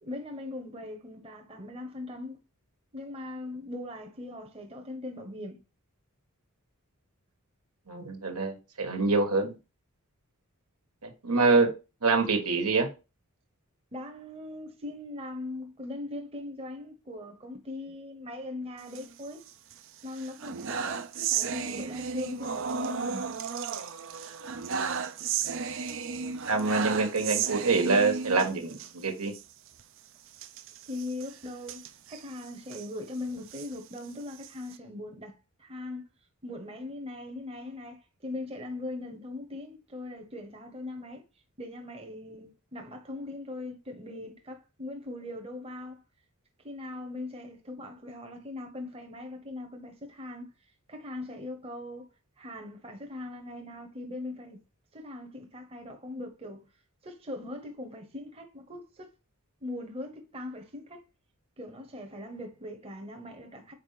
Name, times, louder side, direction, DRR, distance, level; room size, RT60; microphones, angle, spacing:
voice 1, 0.0-2.4 2.9-5.6 13.9-19.4 20.0-23.3 30.9-31.8 32.1-35.3 35.6-36.0 36.4-41.2 41.6-46.0 46.6-50.5 50.9-52.1 52.4-54.6 54.9-56.6 57.0-59.1 59.6-61.0 61.6-63.7, left 2 dB, 25° right, 1.0 m, -40 dB
voice 2, 7.9-9.5 11.0-11.7 12.0-12.9 26.5-29.3, right 3 dB, 90° right, 1.6 m, -25 dB
sound 1, 18.8-19.7 20.1-28.9 29.3-29.4 29.7-29.8 30.3-32.9 33.4-34.8, right 6 dB, 60° right, 0.6 m, -34 dB
4.8 x 4.4 x 5.8 m
head